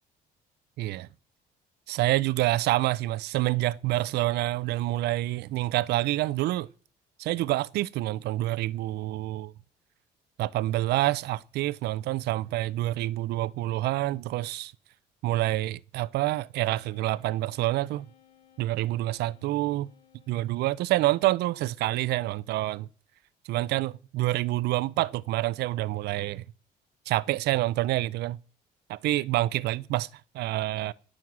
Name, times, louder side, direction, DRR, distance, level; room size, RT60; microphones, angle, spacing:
voice 1, 0.8-1.1 1.9-6.7 7.2-9.5 10.4-14.7 15.2-18.1 18.6-19.9 20.3-22.9 23.5-26.4 27.1-28.4 28.9-30.1 30.3-30.9, right 16 dB, 80° right, 0.6 m, -27 dB
Wind instrument woodwind instrument, 16.6-21.2, left 11 dB, 70° left, 3.1 m, -61 dB
17.0 x 6.5 x 7.4 m
cardioid pair, 110°, 17 cm